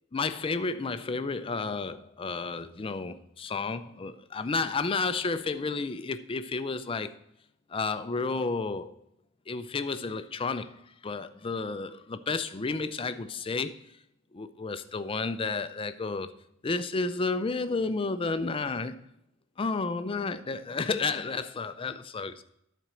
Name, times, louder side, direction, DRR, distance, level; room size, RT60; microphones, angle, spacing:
voice 1, 0.1-7.1 7.7-8.9 9.5-13.8 14.3-16.3 16.6-19.0 19.6-22.4, left 4 dB, 25° left, 0.4 m, -31 dB
11.0 x 4.3 x 6.2 m
head